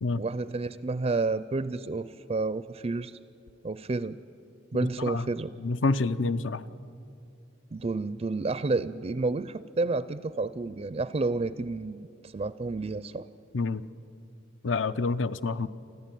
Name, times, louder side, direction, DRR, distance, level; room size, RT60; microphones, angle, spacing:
voice 1, 0.1-3.2 3.6-4.2 4.7-5.5 7.7-13.3, right 3 dB, 30° right, 16 dB, 0.4 m, -30 dB
voice 2, 5.6-6.6 13.5-13.8 14.6-15.7, left 3 dB, 70° left, 15 dB, 0.6 m, -27 dB
29.5 x 11.5 x 9.1 m, 2.7 s
head